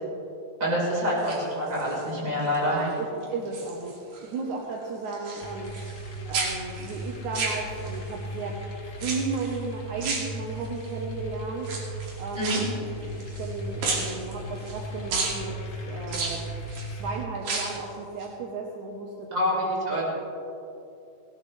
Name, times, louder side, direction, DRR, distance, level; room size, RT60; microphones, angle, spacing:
voice 1, 0.6-2.8 12.4-12.6 19.3-20.0, equal, 25° right, -5 dB, 4.6 m, -26 dB
sound 1, 1.1-2.1 2.5-2.9 3.2-4.3 4.5-6.1 6.3-8.1 9.0-9.6 10.0-10.9 11.6-13.5 13.8-14.8 15.1-15.4 16.1-16.9 17.4-17.9 18.2-18.3, right 3 dB, 85° right, 4.1 m, -32 dB
voice 2, 2.6-6.0 6.3-8.5 9.0-11.7 12.2-15.5 15.9-16.5 16.9-20.0, right 4 dB, 70° right, 0 dB, 2.4 m, -34 dB
sound 2, 5.4-17.2, right 1 dB, 50° left, 0.9 m, -37 dB
19.0 x 18.0 x 3.3 m, 2.7 s
omnidirectional pair, 3.7 m